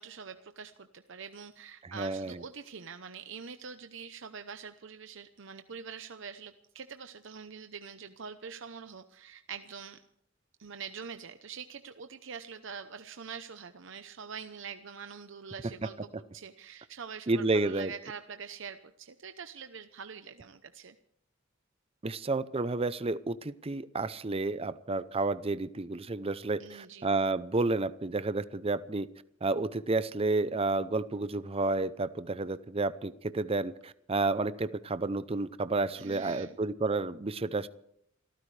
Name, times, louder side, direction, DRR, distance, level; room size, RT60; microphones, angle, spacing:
voice 1, 0.0-10.0 10.6-20.9 26.6-27.1 36.0-36.6, right 6 dB, 65° right, 8 dB, 0.8 m, -45 dB
voice 2, 1.8-2.4 17.3-17.9 22.0-29.1 29.4-37.7, right 3 dB, 30° right, 15 dB, 0.6 m, -31 dB
28.0 x 14.0 x 3.3 m, 0.73 s
head